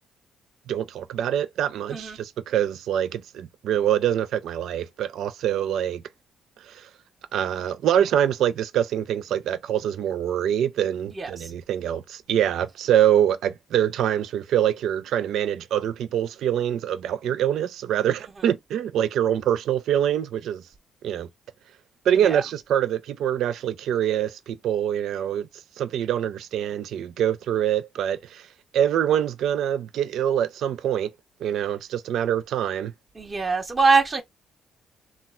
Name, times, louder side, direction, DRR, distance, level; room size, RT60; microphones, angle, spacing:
voice 1, 0.7-6.0 6.7-6.9 7.3-20.6 21.0-21.3 22.1-25.5 25.8-28.5 28.7-31.1 31.4-32.9, right 10 dB, 75° right, 0.4 m, -24 dB
voice 2, 11.1-11.5 22.2-22.4 33.2-34.2, right 4 dB, 35° right, 0.7 m, -23 dB
3.2 x 2.2 x 2.4 m
cardioid pair, 90°, 0 cm